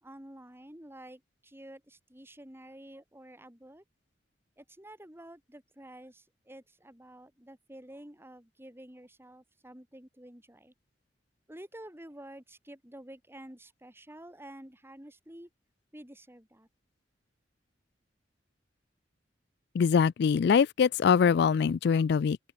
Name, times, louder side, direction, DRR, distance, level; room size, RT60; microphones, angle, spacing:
voice 1, 0.0-3.8 4.6-10.7 11.5-15.5 15.9-16.7, right 1 dB, 15° right, 4.2 m, -50 dB
voice 2, 19.7-22.4, left 6 dB, 60° left, 0.3 m, -23 dB
open air
head